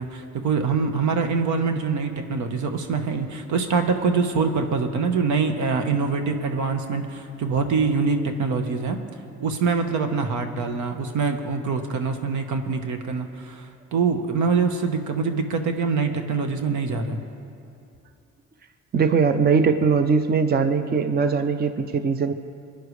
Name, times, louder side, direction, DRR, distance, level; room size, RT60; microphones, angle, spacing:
voice 1, 0.0-9.0 9.4-17.2, right 4 dB, 75° right, 6 dB, 1.2 m, -24 dB
voice 2, 18.9-22.3, right 5 dB, 30° right, 9 dB, 0.6 m, -20 dB
24.0 x 10.0 x 3.3 m, 2.5 s
cardioid pair, 90°, 30 cm